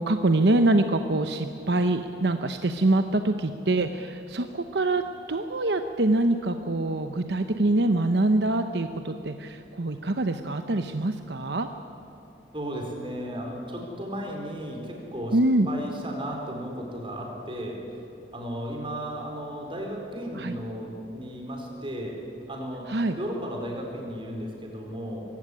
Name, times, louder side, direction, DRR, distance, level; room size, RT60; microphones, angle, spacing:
voice 1, 0.0-5.0 5.3-11.7 15.3-15.7 20.3-20.5 22.9-23.1, right 2 dB, 70° right, 8 dB, 0.9 m, -24 dB
voice 2, 12.5-15.4 15.7-17.8 18.3-22.2 22.5-22.9 23.2-25.3, equal, 30° right, 1 dB, 4.6 m, -34 dB
22.5 x 16.0 x 10.0 m, 2.9 s
head